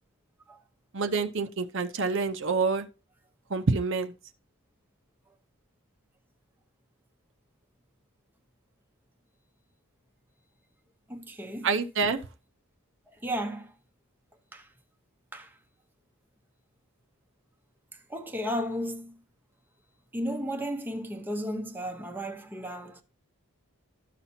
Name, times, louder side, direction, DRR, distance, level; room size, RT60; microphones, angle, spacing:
voice 1, 0.9-2.9 3.5-4.1 11.6-12.2, right 4 dB, 60° right, 0.7 m, -27 dB
voice 2, 11.1-11.7 13.2-13.7 14.5-14.7 15.3-15.5 18.1-19.1 20.1-23.0, equal, 10° right, 0.8 m, -34 dB
12.5 x 5.8 x 2.7 m
head